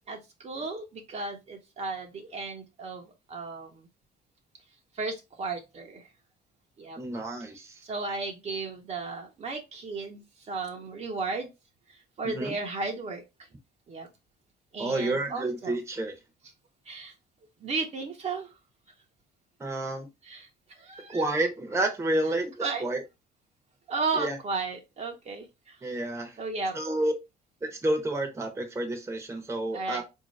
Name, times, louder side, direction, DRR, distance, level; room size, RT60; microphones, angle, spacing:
voice 1, 0.1-3.0 3.3-3.9 5.0-6.0 6.8-7.0 7.8-10.2 10.5-11.5 12.2-13.2 13.9-14.1 14.7-15.7 16.9-17.1 17.6-18.5 20.2-20.5 20.8-21.2 22.6-22.9 23.9-25.8 26.4-26.7 29.7-30.0, right 4 dB, 40° right, 2 dB, 0.9 m, -34 dB
voice 2, 7.0-7.8 12.2-12.6 14.8-16.2 19.6-20.1 21.1-23.0 24.1-24.4 25.8-26.4 26.7-27.1 27.6-30.0, right 1 dB, 15° right, 3 dB, 1.0 m, -30 dB
4.3 x 2.7 x 3.1 m, 0.24 s
cardioid pair, 110°, 17 cm